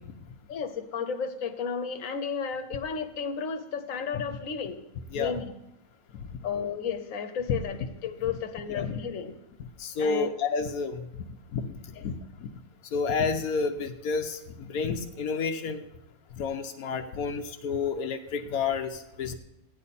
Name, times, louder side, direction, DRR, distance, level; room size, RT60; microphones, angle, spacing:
voice 1, 0.5-4.8 5.2-5.5 6.4-9.4 10.0-10.3 11.9-12.0, left 6 dB, 70° left, 7 dB, 1.3 m, -33 dB
voice 2, 9.8-11.0 11.5-11.7 12.0-12.2 12.9-15.8 16.4-19.4, left 5 dB, 90° left, 5 dB, 1.2 m, -30 dB
15.5 x 9.9 x 4.2 m, 0.86 s
omnidirectional pair, 1.5 m